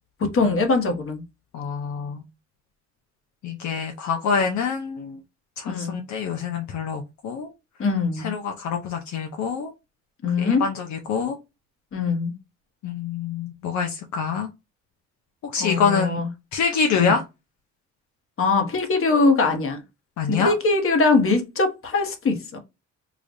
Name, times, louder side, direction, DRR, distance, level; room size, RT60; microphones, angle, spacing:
voice 1, 0.2-1.2 5.7-6.0 7.8-8.3 10.2-10.7 11.9-12.3 15.6-16.3 16.9-17.2 18.4-19.8 20.3-22.6, left 3 dB, 45° left, 1.1 m, -22 dB
voice 2, 1.5-2.2 3.4-5.2 5.6-7.5 8.2-9.7 10.4-11.4 12.8-14.5 15.5-16.2 16.5-17.2 20.2-20.5, left 6 dB, 70° left, 0.7 m, -26 dB
5.0 x 2.4 x 2.6 m
cardioid pair, 90°, 30 cm